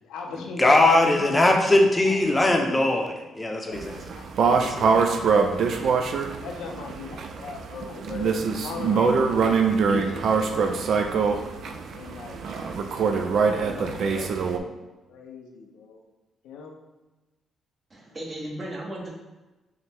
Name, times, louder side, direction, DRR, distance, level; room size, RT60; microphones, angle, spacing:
voice 1, 0.0-1.8 2.0-2.6 3.7-4.5 5.0-5.3 5.6-5.8 6.3-10.9 11.9-14.8 15.1-16.0 16.4-16.8, left 5 dB, 85° left, 2 dB, 0.5 m, -39 dB
voice 2, 0.6-4.0 4.6-5.0, left 2 dB, 20° left, 2 dB, 0.7 m, -20 dB
sound 1, 3.7-14.6, right 5 dB, 65° right, 0.4 m, -24 dB
voice 3, 17.9-19.1, right 1 dB, 30° right, -3 dB, 1.0 m, -35 dB
5.6 x 2.1 x 3.4 m, 1.1 s
cardioid pair, 90°, 0 cm